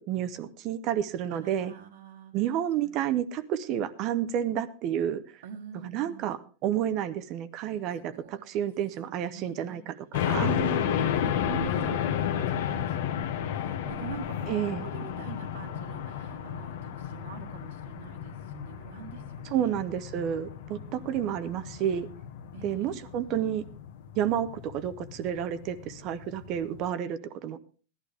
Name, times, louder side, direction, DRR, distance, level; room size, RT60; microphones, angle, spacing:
voice 1, 0.0-1.7 2.3-5.2 5.8-10.5 14.5-14.9 19.4-22.1 22.6-23.6 24.2-27.6, right 10 dB, 30° right, 13 dB, 0.7 m, -30 dB
voice 2, 1.3-2.3 2.8-3.0 5.4-6.3 7.7-8.7 9.0-9.9 10.3-19.7 20.8-21.3 22.5-23.0, right 8 dB, 75° right, -1 dB, 1.6 m, -44 dB
sound 1, 10.1-26.8, left 9 dB, 60° left, 1.3 m, -33 dB
17.0 x 11.5 x 3.4 m, 0.37 s
supercardioid pair, 170°, 0 cm